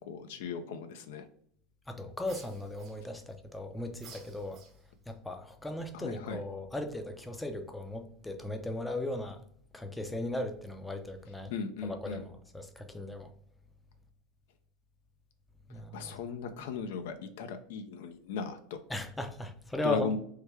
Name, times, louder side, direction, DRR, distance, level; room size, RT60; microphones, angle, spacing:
voice 1, 0.1-1.3 5.9-6.4 11.5-12.2 15.9-18.8 19.8-20.2, left 5 dB, 75° left, 0.4 m, -37 dB
voice 2, 1.9-4.6 5.1-9.4 9.7-11.5 11.8-13.3 15.7-16.1 18.9-20.2, left 1 dB, 10° left, 0.4 m, -37 dB
sound 1, 2.2-3.4 4.0-5.1, right 5 dB, 50° right, 0.7 m, -54 dB
3.1 x 2.1 x 3.4 m
supercardioid pair, 105°, 0 cm